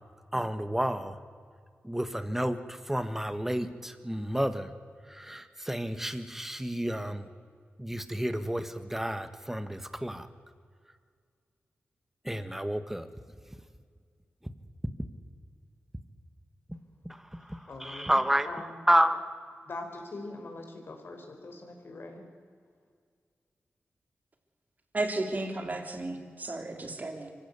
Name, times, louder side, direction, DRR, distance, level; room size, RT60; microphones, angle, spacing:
voice 1, 0.3-1.1 1.8-4.7 5.1-7.3 7.8-10.3 12.2-13.1 17.0-19.3, equal, 10° right, 11 dB, 1.7 m, -30 dB
voice 2, 17.7-18.1 18.5-18.7 19.6-22.2, left 2 dB, 60° left, 4 dB, 4.7 m, -42 dB
voice 3, 24.9-27.3, right 2 dB, 40° right, 5 dB, 3.4 m, -33 dB
25.0 x 16.0 x 8.4 m, 2.1 s
cardioid pair, 65°, 4 cm